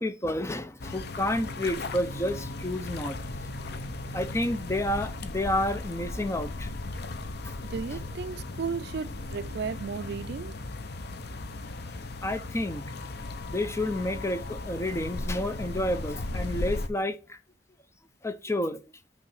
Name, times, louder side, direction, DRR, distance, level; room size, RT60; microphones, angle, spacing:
voice 1, 0.0-3.2 3.6-3.8 4.1-6.7 7.4-7.6 12.2-12.8 13.5-17.4 18.2-18.8, left 1 dB, 15° left, 0.6 m, -30 dB
sound 1, 0.8-16.9, left 2 dB, 65° left, 0.7 m, -36 dB
voice 2, 7.7-10.6, right 5 dB, 65° right, 0.4 m, -34 dB
8.9 x 3.2 x 5.6 m
head